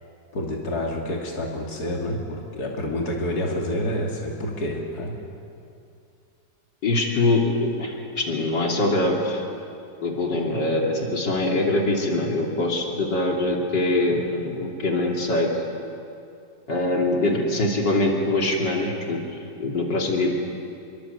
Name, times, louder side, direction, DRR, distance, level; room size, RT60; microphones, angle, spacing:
voice 1, 0.3-5.1, left 1 dB, 60° left, -1 dB, 3.3 m, -28 dB
voice 2, 6.8-9.4 10.0-15.5 16.7-20.3, left 2 dB, 80° left, 0 dB, 3.5 m, -23 dB
27.5 x 23.5 x 8.2 m, 2.5 s
omnidirectional pair, 1.9 m